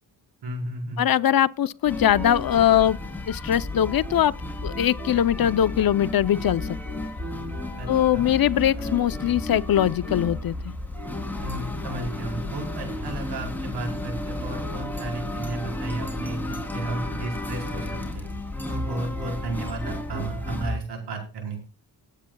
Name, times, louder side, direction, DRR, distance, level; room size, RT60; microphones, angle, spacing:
voice 1, 0.4-1.0 7.8-8.2 11.4-18.2 18.7-21.7, right 2 dB, 80° right, 4.7 m, -33 dB
voice 2, 1.0-3.0 3.3-4.3 4.6-6.7 7.9-10.5, left 10 dB, 60° left, 0.7 m, -21 dB
sound 1, 1.8-20.8, left 2 dB, 5° left, 3.1 m, -32 dB
21.0 x 8.5 x 2.3 m
cardioid pair, 75°, 40 cm